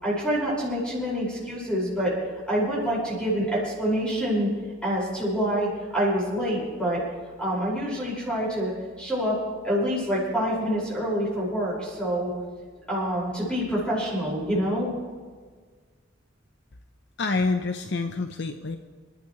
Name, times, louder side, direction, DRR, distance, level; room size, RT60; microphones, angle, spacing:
voice 1, 0.0-2.2 2.5-4.5 4.8-7.0 7.4-12.3 12.9-14.9, equal, 5° left, -7 dB, 5.5 m, -26 dB
voice 2, 17.2-18.8, left 3 dB, 60° left, 6 dB, 0.8 m, -27 dB
28.0 x 12.0 x 3.2 m, 1.5 s
head